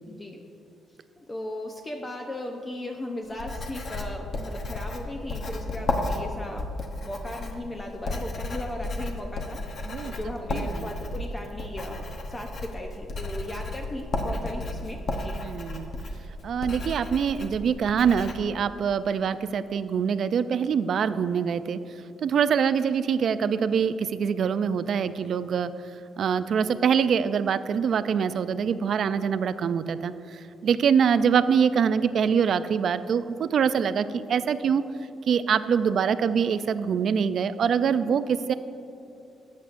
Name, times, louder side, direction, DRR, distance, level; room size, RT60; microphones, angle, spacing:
voice 1, 0.0-0.4 1.2-6.7 7.0-15.4, left 1 dB, 25° left, 2 dB, 0.7 m, -37 dB
Writing, 3.3-18.3, left 2 dB, 50° left, 1.0 m, -33 dB
voice 2, 10.5-10.9 15.4-15.9 16.4-21.8 22.2-25.7 26.2-34.8 35.3-38.5, right 7 dB, 60° right, 13 dB, 0.3 m, -24 dB
13.0 x 8.2 x 2.5 m, 2.8 s
cardioid pair, 90°, 0 cm